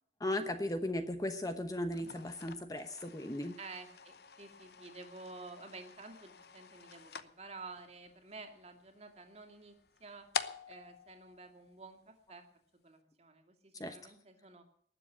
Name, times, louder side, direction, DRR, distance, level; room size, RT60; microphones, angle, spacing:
voice 1, 0.2-3.5 13.8-14.0, left 1 dB, 20° left, 7 dB, 0.9 m, -36 dB
sound 1, 1.9-12.2, left 6 dB, 60° left, 0.9 m, -47 dB
voice 2, 3.6-10.3 10.7-12.5 12.8-14.7, right 3 dB, 35° right, 4 dB, 2.3 m, -51 dB
19.5 x 7.6 x 8.4 m, 0.65 s
head